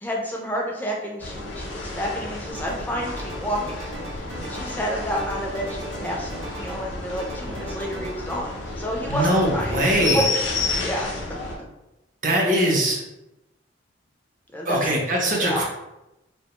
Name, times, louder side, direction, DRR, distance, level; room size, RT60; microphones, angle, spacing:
voice 1, 0.0-6.3 6.6-10.4 10.8-11.1 14.5-14.9 15.4-15.6, equal, 10° left, -1 dB, 0.3 m, -30 dB
sound 1, 1.2-11.6, left 3 dB, 70° left, 0.5 m, -31 dB
sound 2, 2.5-2.9 3.2-4.9 5.2-6.9 7.2-8.4, right 2 dB, 85° right, 0.6 m, -40 dB
voice 2, 9.1-10.2 12.2-13.0 14.6-15.6, right 1 dB, 40° right, -2 dB, 0.5 m, -21 dB
2.3 x 2.1 x 2.9 m, 0.94 s
head